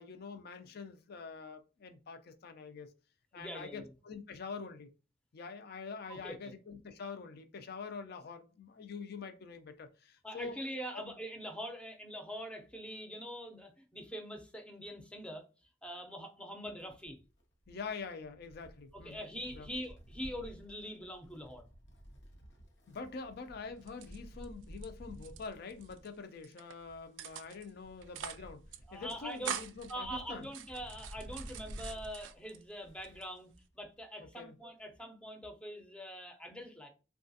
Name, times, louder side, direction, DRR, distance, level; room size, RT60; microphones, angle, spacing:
voice 1, 0.0-2.9 3.3-4.9 5.3-10.6 10.9-11.0 17.7-19.3 19.5-19.7 22.9-30.5 34.2-34.6, left 4 dB, 60° left, 0.4 m, -45 dB
voice 2, 3.3-3.9 6.1-6.5 10.2-15.4 15.8-17.2 18.9-21.7 28.9-29.6 29.9-36.9, equal, 5° left, 0.5 m, -44 dB
Wind, 16.8-33.4 33.7-33.8 34.8-34.9, equal, 90° left, 0.8 m, -53 dB
sound 1, 23.8-24.9 25.1-26.1 26.4-26.7 27.2-27.7 28.0-28.5 28.7-28.8 29.1-29.9 30.4-32.6 33.0-33.7, right 9 dB, 90° right, 0.3 m, -44 dB
3.2 x 2.3 x 2.6 m
head